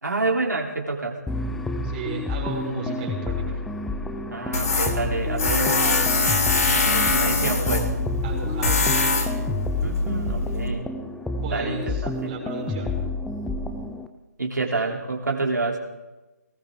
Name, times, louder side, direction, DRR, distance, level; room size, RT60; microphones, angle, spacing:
voice 1, 0.0-1.2 4.3-5.9 6.7-7.9 8.7-8.9 9.8-10.9 11.5-12.3 14.4-15.8, right 3 dB, 80° right, 0 dB, 3.2 m, -28 dB
sound 1, 1.3-14.1, left 2 dB, 5° left, 0.4 m, -30 dB
voice 2, 1.8-3.6 8.2-9.0 11.4-13.0 14.7-14.9, right 3 dB, 25° right, -1 dB, 4.2 m, -34 dB
Tools, 4.5-10.7, left 3 dB, 60° left, 3.4 m, -23 dB
20.0 x 19.0 x 3.7 m, 1.1 s
figure-of-eight pair, 155°, 10 cm